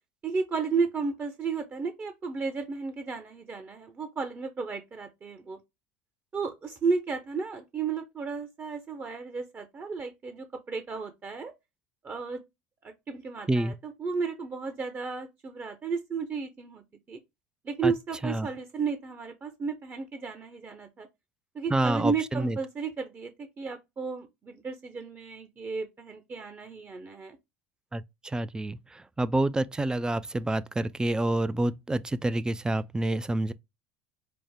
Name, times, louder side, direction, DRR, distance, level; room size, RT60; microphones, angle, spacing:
voice 1, 0.2-5.6 6.3-11.5 12.0-12.4 12.8-16.8 17.1-17.2 17.6-21.1 21.5-27.4, right 5 dB, 30° right, 0.8 m, -33 dB
voice 2, 21.7-22.6 27.9-33.5, right 1 dB, 10° right, 0.4 m, -28 dB
5.0 x 2.1 x 3.5 m
hypercardioid pair, 85°, 7 cm